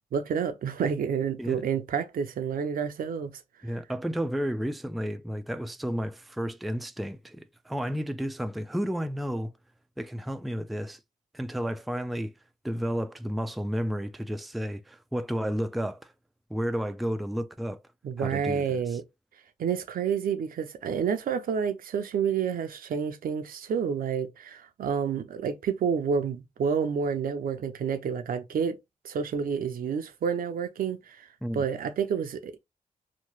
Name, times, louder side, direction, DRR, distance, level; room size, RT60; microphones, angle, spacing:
voice 1, 0.1-3.3 18.0-19.0 19.6-28.8 29.0-31.3 31.5-32.6, right 7 dB, 80° right, 0.5 m, -29 dB
voice 2, 3.6-9.5 10.0-11.0 11.3-12.3 12.6-16.1 16.5-17.8 18.2-19.0 31.4-31.6, equal, ahead, 0.3 m, -32 dB
2.9 x 2.2 x 3.1 m
cardioid pair, 70°, 15 cm